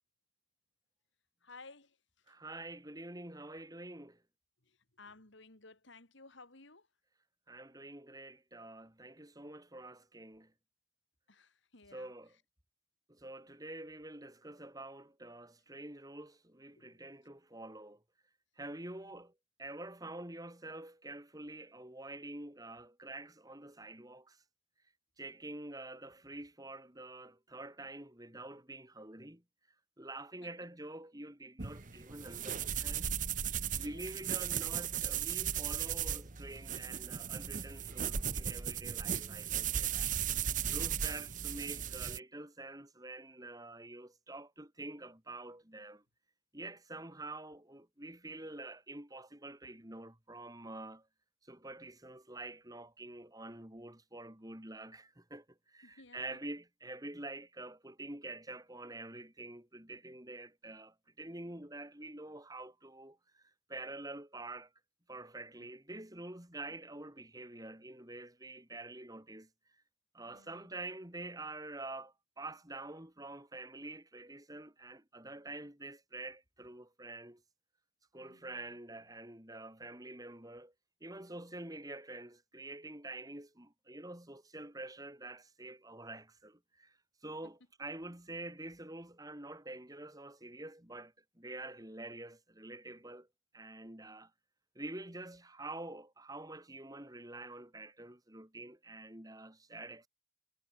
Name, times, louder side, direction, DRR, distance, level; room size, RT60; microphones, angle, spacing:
voice 1, 1.4-2.4 4.6-6.9 11.3-12.1 16.7-17.1 19.0-19.2 30.4-30.5 33.8-34.2 40.8-41.2 55.8-56.4 70.3-70.7 78.2-78.8, left 3 dB, 60° left, 3.0 m, -58 dB
voice 2, 2.3-4.2 7.5-10.5 11.9-12.3 13.1-18.0 18.6-19.3 19.6-24.4 25.2-29.4 30.0-33.1 33.7-40.1 40.7-46.0 46.5-51.1 51.4-64.7 65.1-69.5 70.1-77.4 78.1-80.7 81.0-87.0 87.2-93.3 93.5-94.3 94.7-100.1, right 2 dB, 15° right, 3.1 m, -47 dB
sound 1, 31.6-42.2, right 8 dB, 40° right, 1.1 m, -36 dB
head